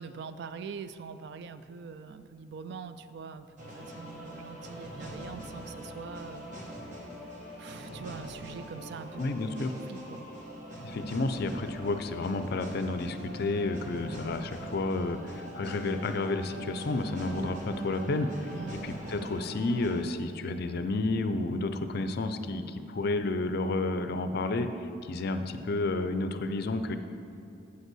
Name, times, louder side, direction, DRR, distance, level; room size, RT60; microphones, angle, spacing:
voice 1, 0.0-6.5 7.6-9.2 9.7-10.3 18.5-18.9, right 5 dB, 60° right, 11 dB, 0.3 m, -43 dB
sound 1, 3.6-20.0, equal, 40° right, 1.4 m, -42 dB
voice 2, 9.2-9.7 10.8-18.5 18.8-27.0, left 2 dB, 55° left, 9 dB, 0.4 m, -31 dB
8.1 x 5.4 x 6.1 m, 2.7 s
head